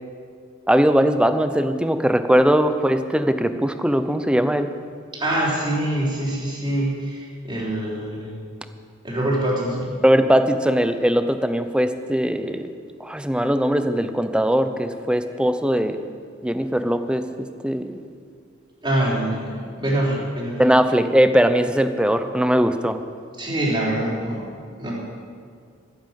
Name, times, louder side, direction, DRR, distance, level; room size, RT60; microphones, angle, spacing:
voice 1, 0.7-4.7 10.0-12.7 13.0-16.0 16.4-18.0 20.6-23.0, equal, 5° right, 9 dB, 0.7 m, -20 dB
voice 2, 5.1-8.3 9.0-9.9 18.8-20.6 23.4-24.4 24.8-24.9, right 1 dB, 25° right, -5 dB, 4.0 m, -24 dB
13.0 x 10.5 x 7.6 m, 2.1 s
head